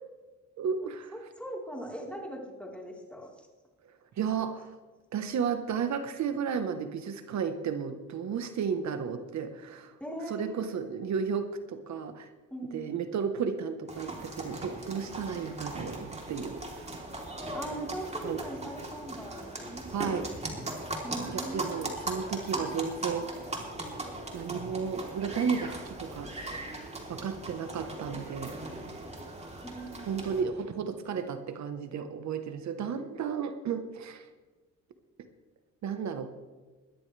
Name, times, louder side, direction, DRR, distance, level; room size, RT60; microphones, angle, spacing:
voice 1, 0.6-1.1 4.2-4.8 5.1-10.0 10.3-12.3 12.7-17.0 18.2-18.4 19.9-20.3 21.3-23.3 24.3-26.7 27.1-28.9 30.1-34.3 35.8-36.3, right 6 dB, 65° right, 8 dB, 1.2 m, -33 dB
voice 2, 1.1-3.3 10.0-10.8 12.5-12.9 17.5-20.4 21.0-21.7 29.6-30.2, right 1 dB, 5° left, -1 dB, 4.0 m, -40 dB
sound 1, 13.9-30.4, right 2 dB, 20° right, 3.5 m, -39 dB
21.0 x 13.5 x 3.4 m, 1.3 s
cardioid pair, 90°, 30 cm